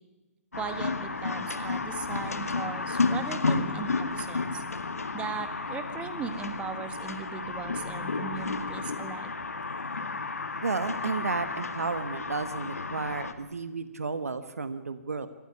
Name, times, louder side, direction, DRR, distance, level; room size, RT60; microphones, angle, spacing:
sound 1, 0.5-13.3, left 4 dB, 80° left, 2.1 m, -32 dB
voice 1, 0.6-4.6 5.1-9.3, right 6 dB, 15° right, 8 dB, 1.8 m, -38 dB
voice 2, 10.6-15.3, right 4 dB, 80° right, 11 dB, 1.4 m, -32 dB
26.5 x 13.5 x 9.8 m, 1.1 s
figure-of-eight pair, 135°, 8 cm